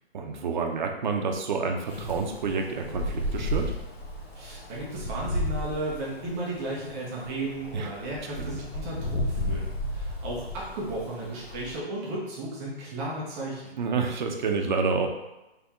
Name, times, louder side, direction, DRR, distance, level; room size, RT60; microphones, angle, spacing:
voice 1, 0.1-3.7 7.7-7.9 8.4-8.6 13.8-15.1, right 4 dB, 45° right, 3 dB, 0.7 m, -28 dB
Wind, 1.9-11.8, left 1 dB, 70° left, 1.4 m, -33 dB
voice 2, 4.3-13.8, right 1 dB, 10° right, -4 dB, 0.5 m, -34 dB
4.4 x 3.4 x 3.5 m, 0.99 s
hypercardioid pair, 150°, 32 cm